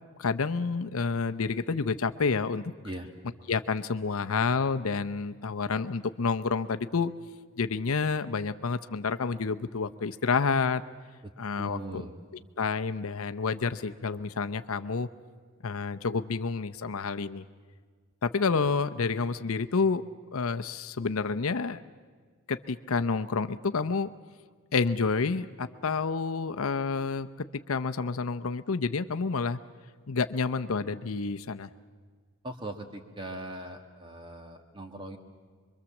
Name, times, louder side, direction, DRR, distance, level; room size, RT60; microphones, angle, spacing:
voice 1, 0.2-2.7 3.5-7.1 7.6-10.8 11.4-12.0 12.6-15.1 15.6-17.4 18.2-20.0 20.3-21.8 22.5-24.1 24.7-27.3 27.7-29.6 30.1-31.7, left 4 dB, 75° left, 10 dB, 0.7 m, -29 dB
voice 2, 11.2-12.2 32.4-35.2, right 1 dB, 20° right, 5 dB, 1.6 m, -40 dB
25.5 x 23.0 x 7.2 m, 1.5 s
head